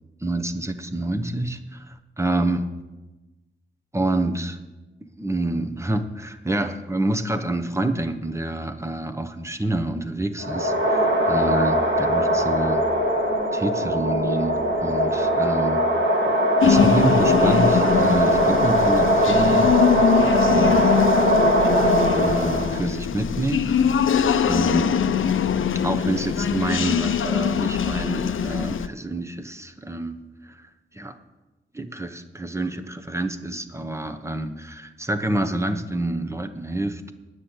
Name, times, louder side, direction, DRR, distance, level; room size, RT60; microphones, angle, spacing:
voice 1, 0.2-2.6 3.9-4.6 5.2-12.8 13.5-15.8 16.6-19.7 20.4-21.0 22.2-23.7 24.5-25.1 25.8-30.2 30.4-30.7 30.9-31.2 31.7-37.1, right 2 dB, 15° right, 7 dB, 0.9 m, -27 dB
sound 1, 10.4-22.8, equal, 70° right, 2.1 m, -20 dB
sound 2, 16.6-28.9, left 8 dB, 85° left, 0.5 m, -22 dB
9.7 x 6.5 x 8.9 m, 1.1 s
wide cardioid pair, 80°, 20 cm